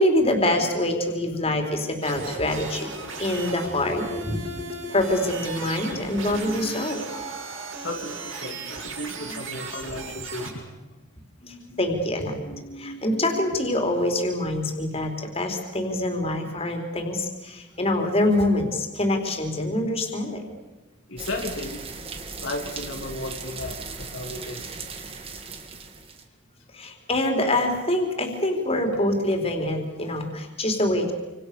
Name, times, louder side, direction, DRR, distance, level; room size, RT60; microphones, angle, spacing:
voice 1, 0.0-2.9 3.2-7.1 8.6-8.7 10.1-10.2 11.4-20.4 26.7-31.1, left 1 dB, 30° left, 3 dB, 4.3 m, -25 dB
sound 1, 2.0-10.5, right 3 dB, 75° right, 7.9 m, -36 dB
voice 2, 7.8-10.7 21.1-21.9 22.4-24.7, left 2 dB, 65° left, 2 dB, 2.8 m, -34 dB
sound 2, 21.2-26.2, right 4 dB, 30° right, 2.5 m, -37 dB
28.5 x 27.0 x 7.0 m, 1.1 s
head